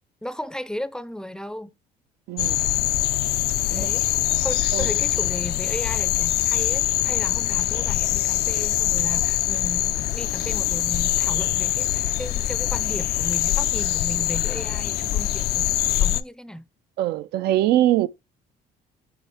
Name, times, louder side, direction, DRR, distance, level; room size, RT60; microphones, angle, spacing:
voice 1, 0.2-1.7 3.7-4.1 4.4-16.7, equal, 5° left, 0.4 m, -35 dB
voice 2, 2.3-2.6 3.7-3.9 4.7-4.9 17.0-18.1, right 13 dB, 75° right, 0.4 m, -22 dB
sound 1, 2.4-16.2, left 14 dB, 70° left, 0.4 m, -23 dB
7.1 x 4.8 x 3.3 m
cardioid pair, 110°, 17 cm